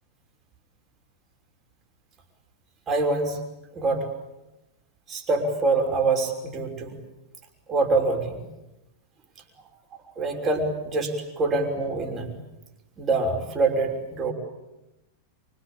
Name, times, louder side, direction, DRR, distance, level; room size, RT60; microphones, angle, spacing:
voice 1, 2.9-3.4 3.7-4.1 5.1-7.0 7.7-8.4 10.2-12.3 13.0-14.3, right 3 dB, 30° right, 2 dB, 5.9 m, -25 dB
25.5 x 25.5 x 8.8 m, 0.95 s
figure-of-eight pair, 90°, 0 cm